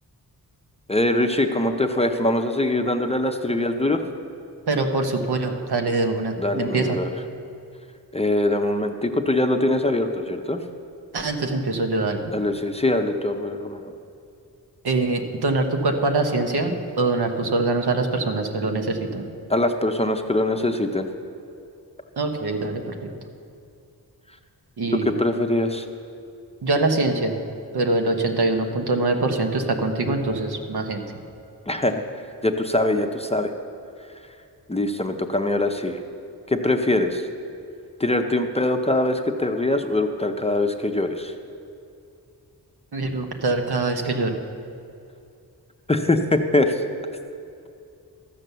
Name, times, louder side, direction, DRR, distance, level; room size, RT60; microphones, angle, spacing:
voice 1, 0.9-4.0 6.4-7.1 8.1-10.6 12.3-13.9 19.5-21.1 24.9-25.8 31.7-32.0 32.4-33.5 34.7-36.0 36.5-37.2 38.0-41.3 45.9-46.8, left 1 dB, 15° left, 5 dB, 0.6 m, -23 dB
voice 2, 4.7-7.0 11.1-12.2 14.8-19.2 22.2-23.1 24.8-25.1 26.6-27.4 27.7-31.0 42.9-44.4, right 2 dB, 75° right, 4 dB, 1.2 m, -23 dB
13.5 x 7.6 x 6.8 m, 2.5 s
wide cardioid pair, 125°, 39 cm